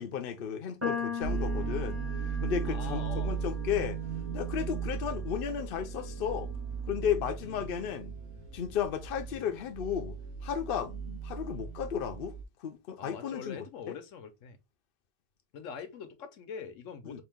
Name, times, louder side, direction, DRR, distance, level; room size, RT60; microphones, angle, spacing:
voice 1, 0.0-2.0 2.3-4.0 4.3-6.5 6.9-8.2 8.5-14.0 17.0-17.2, left 8 dB, 55° left, 0.7 m, -34 dB
sound 1, 0.8-7.1, left 6 dB, 10° right, 1.1 m, -41 dB
sound 2, 1.2-12.4, right 6 dB, 80° right, 1.0 m, -37 dB
voice 2, 2.7-3.4 7.4-7.7 13.0-14.6 15.5-17.2, left 6 dB, 85° left, 1.1 m, -43 dB
3.8 x 2.5 x 3.4 m
omnidirectional pair, 1.3 m